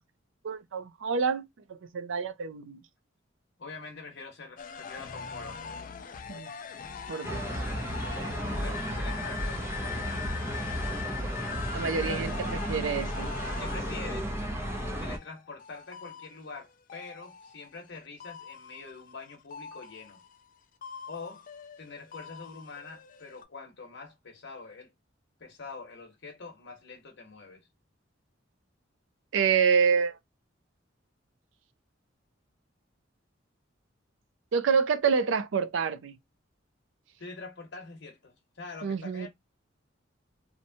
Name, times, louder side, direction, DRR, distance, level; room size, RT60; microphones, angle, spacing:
voice 1, 0.4-2.8 6.3-6.5 7.1-7.4 11.7-12.3 12.7-13.3 29.3-30.2 34.5-36.1 38.8-39.3, right 6 dB, 75° right, 0.4 m, -27 dB
voice 2, 3.6-5.6 8.5-10.1 12.1-12.3 13.6-14.4 15.0-20.2 21.1-21.4 21.8-24.9 25.4-27.6 37.2-39.3, left 4 dB, 60° left, 0.9 m, -45 dB
sound 1, 4.6-17.9 18.2-20.6 20.8-23.4, left 6 dB, 45° left, 0.3 m, -42 dB
sound 2, 7.2-15.2, equal, 15° right, 0.5 m, -33 dB
2.7 x 2.2 x 2.6 m
head